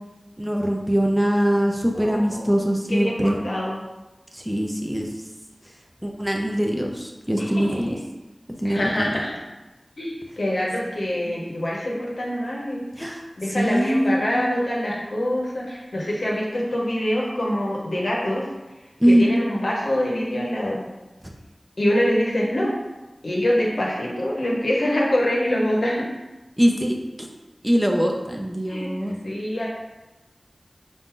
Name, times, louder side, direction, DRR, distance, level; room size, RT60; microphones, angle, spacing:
voice 1, 0.4-3.5 4.3-5.1 6.0-7.9 8.6-9.1 11.2-11.4 13.0-13.2 13.5-14.5 19.0-19.3 26.6-27.3 27.6-29.2, equal, 10° right, 1 dB, 0.6 m, -22 dB
voice 2, 1.9-3.8 7.4-8.0 8.6-9.4 10.0-12.8 13.4-18.5 19.0-20.8 21.8-22.7 23.2-26.1 28.7-28.9 29.2-29.7, left 1 dB, 90° left, -4 dB, 1.0 m, -25 dB
4.5 x 2.6 x 3.7 m, 1.1 s
wide cardioid pair, 45°, 0 cm